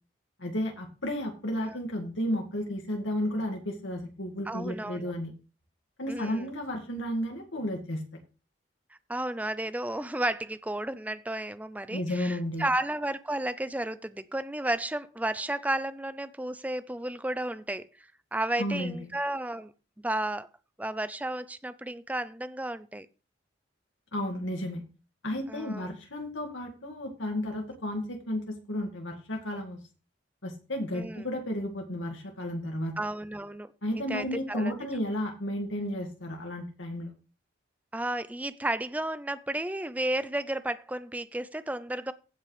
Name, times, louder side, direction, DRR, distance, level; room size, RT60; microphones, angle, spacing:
voice 1, 0.4-5.3 6.0-8.0 11.9-12.7 18.6-19.0 24.1-24.8 25.2-29.8 30.4-32.9 33.8-37.1, left 1 dB, 80° left, 2.0 m, -33 dB
voice 2, 4.5-5.1 6.1-6.5 9.1-19.7 20.0-20.5 20.8-23.1 25.5-25.9 30.9-31.3 33.0-33.7 34.1-34.7 37.9-42.1, right 1 dB, 10° right, 0.5 m, -33 dB
16.0 x 5.8 x 3.3 m
head